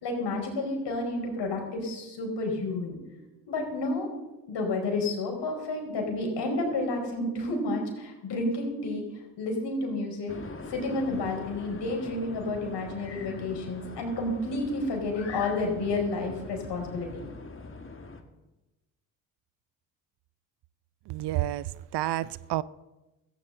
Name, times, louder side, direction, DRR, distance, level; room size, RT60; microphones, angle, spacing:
voice 1, 0.0-3.0 3.5-4.1 4.5-9.0 9.4-10.3 10.7-17.1, left 2 dB, 60° left, 1 dB, 4.8 m, -30 dB
sound 1, 10.3-18.2, left 3 dB, 25° left, 1.9 m, -43 dB
voice 2, 21.1-22.6, right 15 dB, 60° right, 20 dB, 0.6 m, -30 dB
16.0 x 14.5 x 3.9 m, 1.1 s
hypercardioid pair, 55°, 46 cm